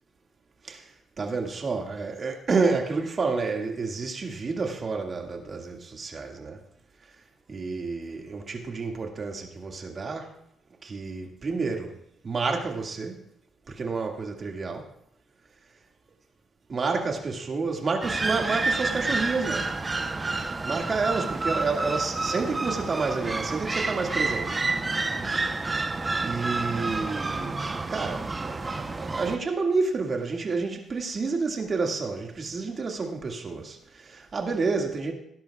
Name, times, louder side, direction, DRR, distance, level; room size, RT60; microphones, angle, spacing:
voice 1, 1.2-6.6 7.5-10.3 10.8-12.0 12.2-13.2 13.7-14.9 16.7-19.7 20.6-24.6 26.2-35.1, right 4 dB, 40° right, 2.1 m, -29 dB
sound 1, 18.0-29.4, right 3 dB, 25° right, 0.9 m, -29 dB
18.0 x 11.0 x 2.4 m
cardioid pair, 90°, 0 cm